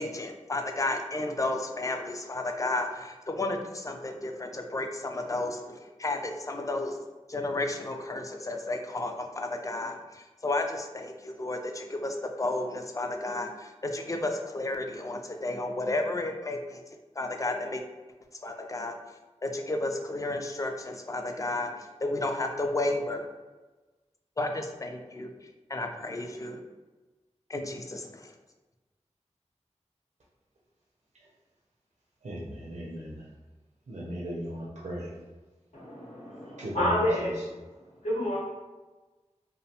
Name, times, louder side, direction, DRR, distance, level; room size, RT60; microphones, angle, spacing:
voice 1, 0.0-7.0 7.3-16.8 17.2-17.8 18.4-19.0 19.4-23.3 24.4-26.6 27.5-28.3, left 2 dB, 30° left, 4 dB, 0.3 m, -32 dB
voice 2, 32.2-33.2 33.9-35.1 36.6-37.3, equal, 85° right, -5 dB, 0.5 m, -37 dB
voice 3, 35.7-37.3 38.0-38.4, equal, 85° left, -5 dB, 0.9 m, -29 dB
2.8 x 2.1 x 2.7 m, 1.2 s
wide cardioid pair, 55°, 12 cm